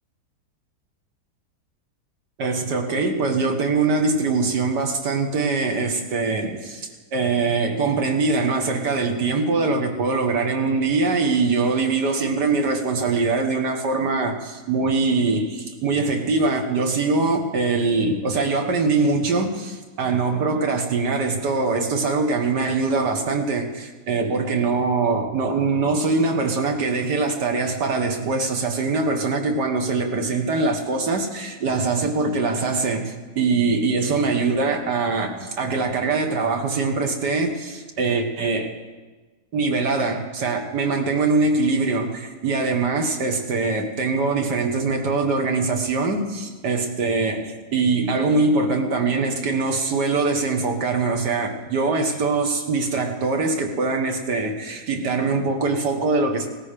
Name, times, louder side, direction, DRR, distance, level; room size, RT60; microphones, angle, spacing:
voice 1, 2.4-38.7 39.5-56.5, right 3 dB, 85° right, 4 dB, 2.1 m, -23 dB
18.0 x 13.5 x 5.1 m, 1.3 s
omnidirectional pair, 1.7 m